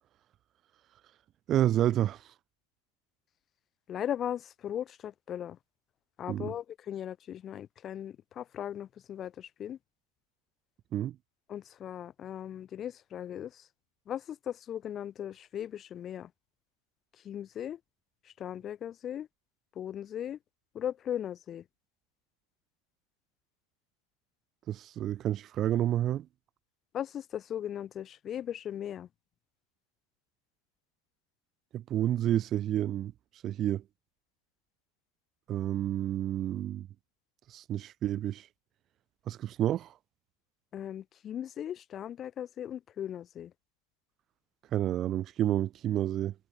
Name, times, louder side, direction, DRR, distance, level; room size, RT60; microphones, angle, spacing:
voice 1, 1.5-2.2 6.3-6.5 10.9-11.1 24.7-26.3 31.7-33.1 33.4-33.8 35.5-36.9 37.5-38.5 39.3-39.9 44.7-46.3, right 12 dB, 30° right, 3.2 m, -29 dB
voice 2, 3.9-5.6 6.2-9.8 11.5-13.6 14.1-16.3 17.2-17.8 18.4-19.3 19.7-20.4 20.7-21.6 26.9-29.1 40.7-43.5, left 10 dB, 25° left, 5.0 m, -38 dB
figure-of-eight pair, 105°, 0 cm